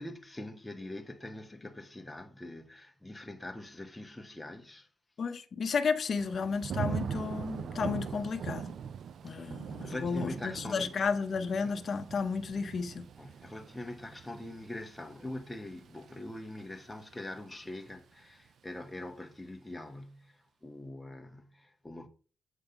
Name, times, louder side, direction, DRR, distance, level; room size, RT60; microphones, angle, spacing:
voice 1, 0.0-4.9 7.6-8.5 9.3-11.0 11.6-11.8 13.2-22.1, left 1 dB, 10° left, 1.1 m, -44 dB
voice 2, 5.2-8.8 9.2-13.1, left 5 dB, 55° left, 0.7 m, -33 dB
Thunder / Rain, 6.2-17.1 17.5-18.0, right 7 dB, 70° right, 0.3 m, -41 dB
8.1 x 3.6 x 5.6 m
cardioid pair, 95°, 0 cm